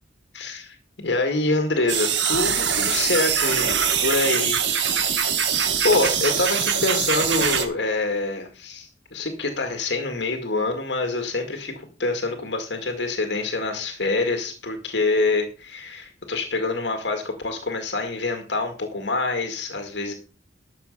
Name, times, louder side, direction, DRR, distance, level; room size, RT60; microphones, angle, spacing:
voice 1, 0.3-5.4 5.8-20.1, left 3 dB, 75° left, 5 dB, 2.0 m, -26 dB
sound 1, 1.9-7.6, right 7 dB, 85° right, 2.2 m, -23 dB
13.0 x 7.5 x 5.5 m, 0.35 s
head